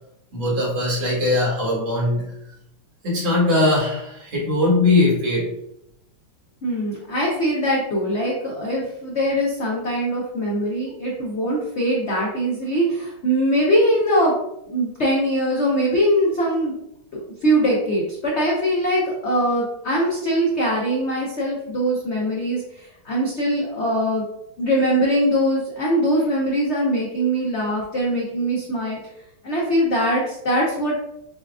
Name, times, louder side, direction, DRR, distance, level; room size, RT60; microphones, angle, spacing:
voice 1, 0.3-2.2 3.0-5.5, left 2 dB, 70° right, -5 dB, 2.5 m, -20 dB
voice 2, 6.6-14.3 14.7-16.7 17.1-24.2 24.6-29.0 29.4-31.0, equal, 75° left, -3 dB, 0.6 m, -22 dB
6.7 x 2.3 x 2.4 m, 0.80 s
omnidirectional pair, 2.2 m